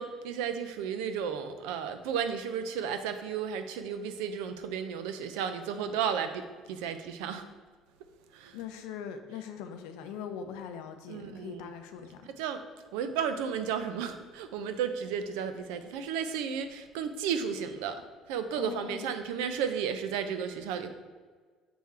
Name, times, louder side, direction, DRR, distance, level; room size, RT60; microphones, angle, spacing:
voice 1, 0.0-6.4 6.7-7.4 8.3-8.6 11.1-11.7 12.2-12.6 12.9-18.0 18.3-20.9, right 7 dB, 85° right, 9 dB, 0.5 m, -33 dB
voice 2, 8.5-12.3 18.6-19.1, left 7 dB, 85° left, 7 dB, 0.5 m, -41 dB
6.0 x 3.7 x 4.2 m, 1.5 s
supercardioid pair, 90°, 0 cm